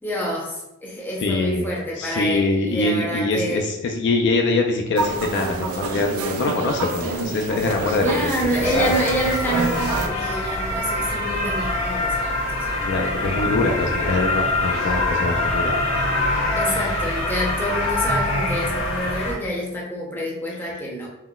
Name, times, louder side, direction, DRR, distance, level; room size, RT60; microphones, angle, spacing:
voice 1, 0.0-3.7 8.0-13.5 16.6-21.1, equal, 10° left, -4 dB, 0.6 m, -27 dB
voice 2, 1.2-1.6 2.0-9.0 12.8-15.8 16.7-16.9, left 3 dB, 55° left, 2 dB, 0.3 m, -24 dB
sound 1, 5.0-10.1, right 3 dB, 90° right, 0.4 m, -27 dB
sound 2, 8.6-19.3, left 2 dB, 75° left, 1.0 m, -24 dB
3.7 x 2.1 x 2.3 m, 0.88 s
head